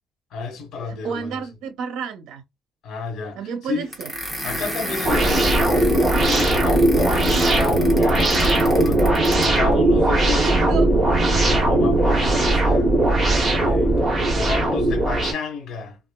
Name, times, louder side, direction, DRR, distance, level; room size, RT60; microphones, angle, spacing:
voice 1, 0.3-1.4 2.8-3.4 3.6-3.9 4.4-10.8 11.3-16.0, left 4 dB, 70° left, 1.2 m, -31 dB
voice 2, 0.9-2.4 3.3-4.1 7.3-7.7 10.4-10.9, right 6 dB, 80° right, 0.6 m, -31 dB
sound 1, 3.9-9.6, equal, 5° right, 1.1 m, -32 dB
sound 2, 5.0-15.3, right 1 dB, 25° right, 1.3 m, -18 dB
3.9 x 2.4 x 2.2 m
cardioid pair, 115°, 0 cm